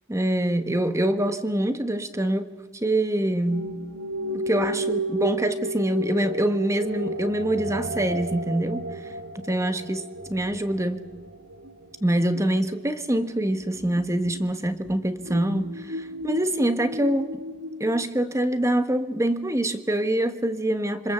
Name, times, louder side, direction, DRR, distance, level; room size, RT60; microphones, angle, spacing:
voice 1, 0.1-2.5 2.7-3.7 4.3-8.9 9.3-11.0 12.0-17.3 17.8-21.1, right 1 dB, 15° right, 1.4 m, -25 dB
sound 1, 3.5-18.1, right 1 dB, 85° right, 2.0 m, -33 dB
27.0 x 25.5 x 7.3 m
head